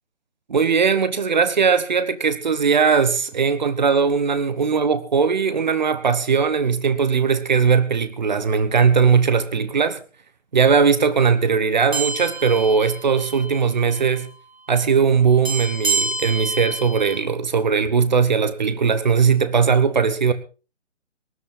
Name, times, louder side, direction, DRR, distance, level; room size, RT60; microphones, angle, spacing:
voice 1, 0.5-10.0 10.5-14.3 14.7-20.3, right 6 dB, 35° right, 1.2 m, -19 dB
sound 1, 11.9-13.6 13.9-14.1 15.4-17.2, right 3 dB, 55° right, 5.3 m, -27 dB
19.0 x 12.0 x 4.1 m
figure-of-eight pair, 150°, 37 cm